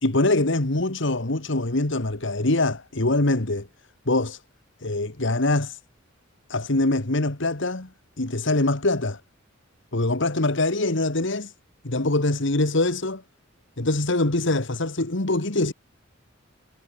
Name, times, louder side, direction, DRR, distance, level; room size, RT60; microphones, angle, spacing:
voice 1, 0.0-3.7 4.1-4.4 4.8-5.8 6.5-7.9 8.2-9.2 9.9-11.5 11.8-13.2 13.8-15.7, left 2 dB, 65° left, 2.0 m, -23 dB
head